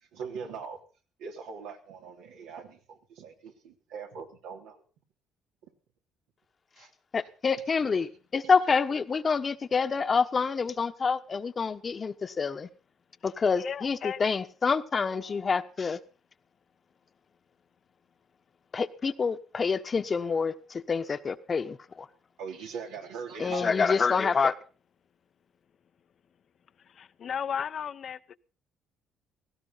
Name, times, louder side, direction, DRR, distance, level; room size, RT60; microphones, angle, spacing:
voice 1, 0.1-0.8 1.2-4.8 6.7-6.9 7.5-8.2 8.6-8.7 22.4-23.9, right 6 dB, 85° right, 1 dB, 3.2 m, -41 dB
voice 2, 7.1-12.7 13.2-16.0 18.7-22.1 23.4-24.5, left 5 dB, 40° left, 10 dB, 1.2 m, -27 dB
voice 3, 13.6-14.2 26.9-28.4, left 8 dB, 55° left, 13 dB, 0.8 m, -35 dB
17.5 x 16.0 x 4.1 m, 0.37 s
supercardioid pair, 70°, 0 cm